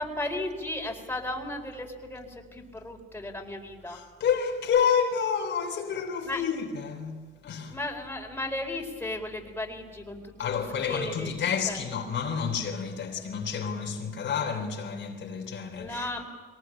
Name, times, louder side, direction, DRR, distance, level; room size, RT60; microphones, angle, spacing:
voice 1, 0.0-4.0 6.2-6.4 7.7-11.3 11.7-11.8 15.8-16.2, left 1 dB, 10° left, 4.6 m, -35 dB
voice 2, 3.9-7.2 7.4-7.8 10.4-16.1, left 7 dB, 65° left, 3.5 m, -29 dB
23.0 x 19.5 x 8.9 m
cardioid pair, 90°, 20 cm